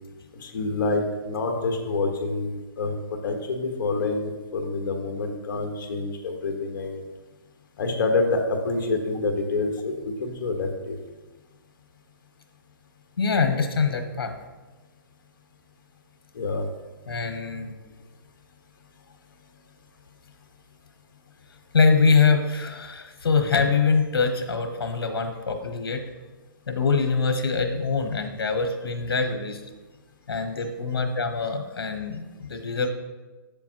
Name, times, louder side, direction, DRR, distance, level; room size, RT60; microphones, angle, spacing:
voice 1, 0.4-7.0 7.8-11.0 16.3-16.7, left 3 dB, 60° left, 4 dB, 1.3 m, -27 dB
voice 2, 13.2-14.3 17.1-17.7 21.7-26.0 26.7-29.6 30.3-32.9, left 5 dB, 90° left, 6 dB, 1.0 m, -24 dB
7.8 x 7.0 x 2.9 m, 1.2 s
hypercardioid pair, 150°, 12 cm